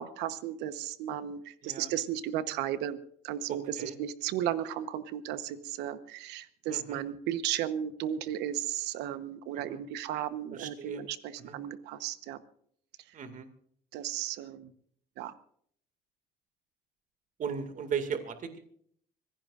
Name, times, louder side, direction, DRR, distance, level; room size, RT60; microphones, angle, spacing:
voice 1, 0.0-3.0 3.2-12.4 13.1-13.2 13.9-14.7 15.2-15.3, right 11 dB, 90° right, 12 dB, 1.1 m, -35 dB
voice 2, 3.5-3.9 6.7-7.0 9.5-9.8 10.5-11.0 11.4-11.6 13.1-13.5 17.4-18.6, right 7 dB, 50° right, 8 dB, 2.2 m, -37 dB
25.5 x 16.5 x 2.5 m, 0.63 s
cardioid pair, 110°, 17 cm